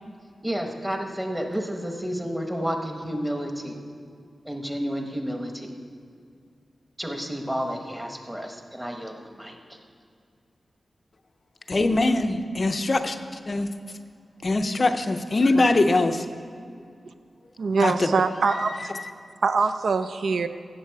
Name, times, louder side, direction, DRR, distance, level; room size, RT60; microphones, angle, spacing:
voice 1, 0.4-3.8 4.4-5.7 7.0-9.8, equal, 5° right, 3 dB, 1.0 m, -31 dB
voice 2, 11.7-13.2 13.5-13.7 14.4-16.3 17.8-18.1 18.9-19.1, left 2 dB, 35° left, 7 dB, 0.5 m, -22 dB
voice 3, 17.6-18.9 19.4-20.5, right 4 dB, 75° right, 10 dB, 0.4 m, -23 dB
16.0 x 7.3 x 4.6 m, 2.3 s
wide cardioid pair, 170°, 0 cm